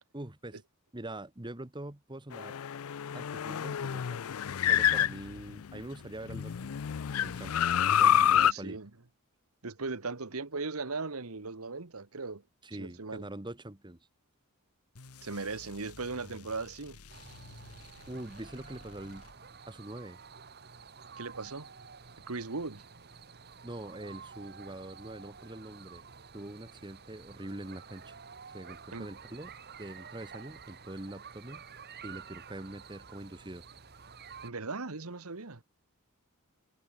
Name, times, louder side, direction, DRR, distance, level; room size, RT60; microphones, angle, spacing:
voice 1, 0.1-0.6 0.9-2.6 3.1-4.3 4.7-6.8 7.2-7.7 8.0-8.8 12.6-14.0 18.1-19.2 19.7-20.2 23.6-26.0 26.3-28.1 28.5-31.6 32.0-33.7, right 1 dB, 20° right, 1.5 m, -44 dB
sound 1, 2.3-5.8 6.3-8.5, left 9 dB, 70° left, 0.5 m, -28 dB
voice 2, 8.3-8.9 9.6-12.4 12.8-13.2 15.2-17.0 21.2-21.7 22.3-22.8 28.9-29.1 34.4-35.6, right 3 dB, 75° right, 1.5 m, -38 dB
sound 2, 15.0-19.8, left 3 dB, 90° left, 1.6 m, -53 dB
sound 3, 17.1-34.5, right 6 dB, 50° right, 2.3 m, -50 dB
head